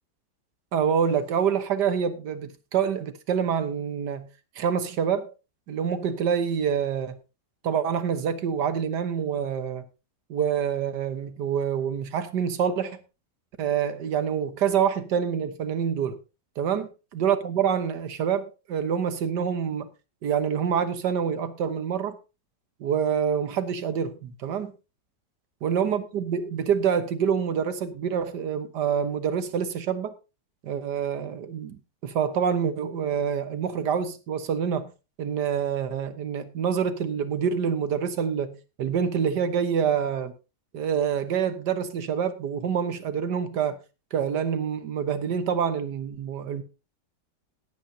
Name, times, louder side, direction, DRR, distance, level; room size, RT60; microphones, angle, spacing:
voice 1, 0.7-4.3 4.6-5.3 5.7-7.2 7.6-9.8 10.3-13.0 13.6-16.2 16.6-19.9 20.2-22.2 22.8-24.7 25.6-30.1 30.6-34.9 35.2-40.3 40.7-43.8 44.1-46.6, right 7 dB, 75° right, 1.7 m, -26 dB
18.5 x 8.7 x 2.8 m
omnidirectional pair, 1.9 m